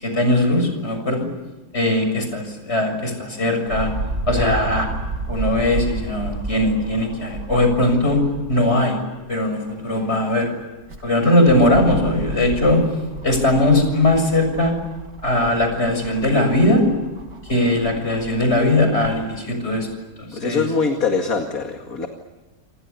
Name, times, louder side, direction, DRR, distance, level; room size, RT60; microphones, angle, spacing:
voice 1, 0.0-1.2 1.7-3.9 4.3-4.9 5.3-8.2 8.5-9.0 9.3-10.5 11.0-12.8 13.2-14.7 15.2-16.8 17.5-19.9 20.2-20.7, left 1 dB, 40° left, 5 dB, 7.3 m, -19 dB
sound 1, 3.7-8.7 9.2-9.3 10.6-19.2 19.9-20.0, right 2 dB, 70° right, 4.0 m, -32 dB
voice 2, 20.3-22.1, left 4 dB, 60° left, 4 dB, 2.6 m, -23 dB
28.5 x 28.0 x 7.0 m, 1.2 s
omnidirectional pair, 1.7 m